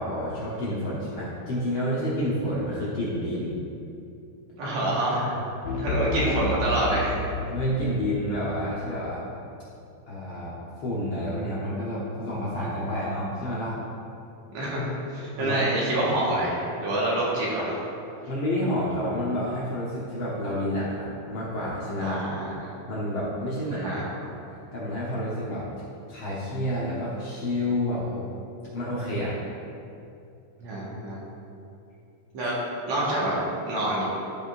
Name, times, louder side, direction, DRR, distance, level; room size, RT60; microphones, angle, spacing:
voice 1, 0.0-3.6 5.1-5.4 6.2-6.4 7.5-9.3 10.1-10.5 10.8-13.8 15.4-16.1 18.3-22.2 22.9-24.3 24.7-25.7 26.1-28.3 28.7-29.3, equal, 60° left, -7 dB, 1.4 m, -29 dB
voice 2, 4.6-5.2 5.8-7.2 14.5-17.7 22.0-22.7 23.7-24.0 30.6-31.2 32.3-32.6 32.9-33.4 33.7-34.1, right 1 dB, 70° right, -6 dB, 2.7 m, -27 dB
sound 1, 5.7-9.1, left 2 dB, 80° left, 1.5 m, -31 dB
12.0 x 5.1 x 2.5 m, 2.6 s
omnidirectional pair, 3.4 m